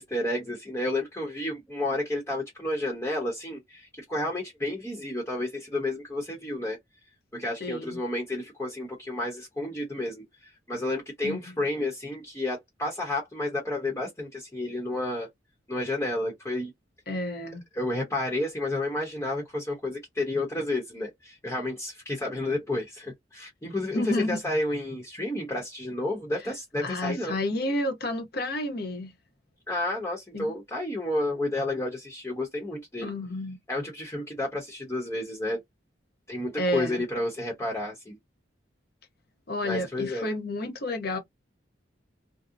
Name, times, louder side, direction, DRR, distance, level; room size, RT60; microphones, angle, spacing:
voice 1, 0.0-6.8 7.3-15.3 15.7-16.7 17.7-27.4 29.7-33.1 33.7-35.6 36.3-38.2 39.6-40.3, left 1 dB, 15° left, 0.8 m, -31 dB
voice 2, 7.6-8.0 11.2-11.5 17.1-17.6 23.9-24.4 26.8-29.1 30.3-30.5 33.0-33.6 36.6-37.0 39.5-41.2, left 1 dB, 55° left, 0.8 m, -30 dB
2.7 x 2.0 x 2.4 m
head